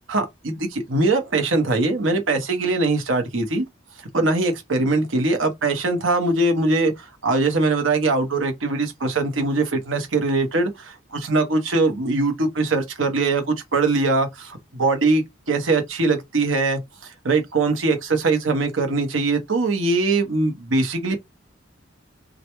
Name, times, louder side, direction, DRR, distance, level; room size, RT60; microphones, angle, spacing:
voice 1, 0.1-3.6 4.1-21.2, right 3 dB, 80° right, 0.9 m, -22 dB
2.3 x 2.1 x 2.9 m
head